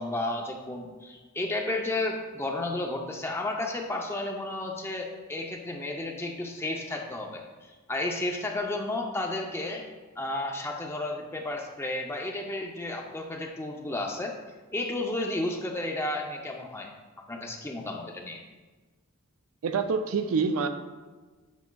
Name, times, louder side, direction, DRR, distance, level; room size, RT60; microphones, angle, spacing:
voice 1, 0.0-9.8 10.2-14.3 14.7-16.9 17.3-18.4, left 2 dB, 10° left, 1 dB, 0.5 m, -32 dB
voice 2, 19.6-20.7, right 5 dB, 70° right, 8 dB, 0.4 m, -26 dB
8.2 x 5.1 x 2.3 m, 1.3 s
head